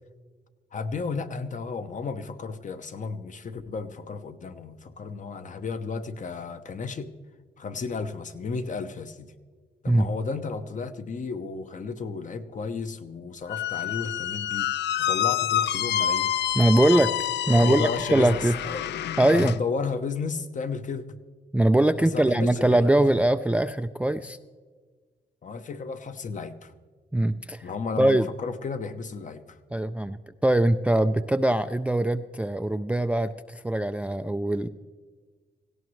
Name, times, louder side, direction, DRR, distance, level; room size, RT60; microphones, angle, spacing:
voice 1, 0.7-7.1 7.6-9.3 9.8-14.7 15.0-16.3 17.5-21.2 22.0-22.9 25.4-26.7 27.6-29.6, left 4 dB, 45° left, 9 dB, 0.9 m, -33 dB
Squeak, 13.5-19.6, left 11 dB, 75° left, 0.4 m, -28 dB
voice 2, 16.6-17.1 17.5-18.5 19.2-19.6 21.5-24.4 27.1-27.7 28.0-28.3 29.7-34.7, right 1 dB, 5° right, 11 dB, 0.3 m, -22 dB
17.5 x 16.5 x 3.2 m, 1.5 s
cardioid pair, 110°, 18 cm